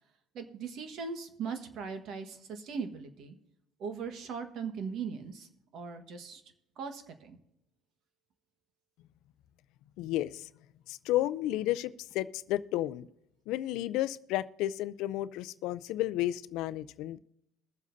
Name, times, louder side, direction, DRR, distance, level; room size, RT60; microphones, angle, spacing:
voice 1, 0.3-3.3 3.8-6.4 6.8-7.4, right 5 dB, 60° right, 8 dB, 1.4 m, -39 dB
voice 2, 10.0-10.5 10.9-13.1 13.5-17.2, left 14 dB, 75° left, 15 dB, 0.4 m, -32 dB
22.0 x 7.4 x 2.7 m, 0.86 s
cardioid pair, 120°, 0 cm